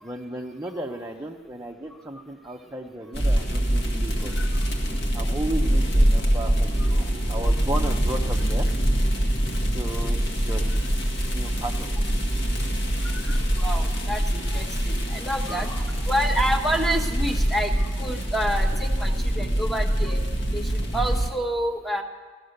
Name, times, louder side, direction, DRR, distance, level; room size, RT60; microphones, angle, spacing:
voice 1, 0.0-4.3 5.1-8.7 9.6-12.1 15.4-15.6, right 1 dB, 15° right, 1 dB, 0.7 m, -35 dB
sound 1, 3.1-21.3, equal, 60° left, 1.8 m, -24 dB
voice 2, 13.1-20.2 20.5-22.0, right 1 dB, ahead, 4 dB, 1.1 m, -29 dB
17.0 x 12.5 x 6.6 m, 1.4 s
head